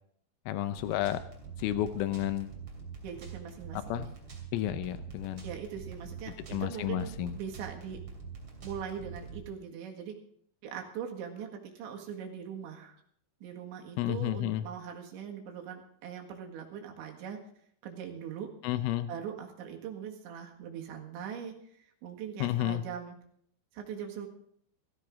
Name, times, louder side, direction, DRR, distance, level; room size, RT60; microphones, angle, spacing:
voice 1, 0.5-1.2 1.6-2.5 3.7-4.1 4.5-5.4 6.5-7.3 14.0-14.6 18.6-19.1 22.4-22.8, left 13 dB, 85° left, 12 dB, 3.2 m, -31 dB
sound 1, 0.8-9.4, right 6 dB, 35° right, 2.8 m, -45 dB
voice 2, 3.0-4.1 5.4-8.0 8.6-10.2 10.6-13.0 13.4-17.4 17.8-18.5 19.1-23.2 23.7-24.3, right 7 dB, 70° right, 2 dB, 4.0 m, -41 dB
17.0 x 15.0 x 3.7 m, 0.65 s
omnidirectional pair, 5.6 m